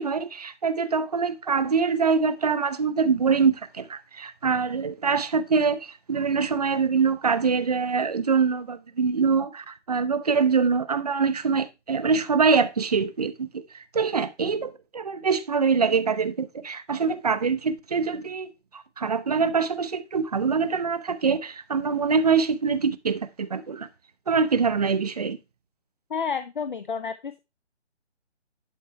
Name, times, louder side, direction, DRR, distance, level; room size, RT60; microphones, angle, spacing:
voice 1, 0.0-23.9 24.3-25.4, right 5 dB, 35° right, 0.7 m, -24 dB
voice 2, 26.1-27.4, left 6 dB, 45° left, 0.7 m, -30 dB
11.5 x 4.3 x 4.4 m
figure-of-eight pair, 140°, 35 cm